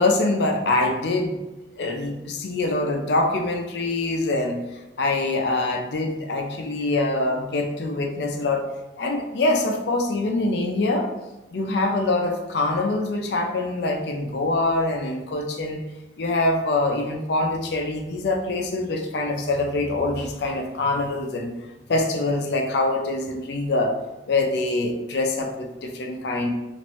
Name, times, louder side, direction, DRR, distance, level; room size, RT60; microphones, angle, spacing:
voice 1, 0.0-1.4 1.8-4.6 5.0-8.6 9.0-11.1 11.5-15.8 16.2-21.5 21.9-24.0 24.3-26.5, left 2 dB, 65° left, 4 dB, 0.4 m, -24 dB
3.0 x 2.5 x 3.0 m, 1.0 s
head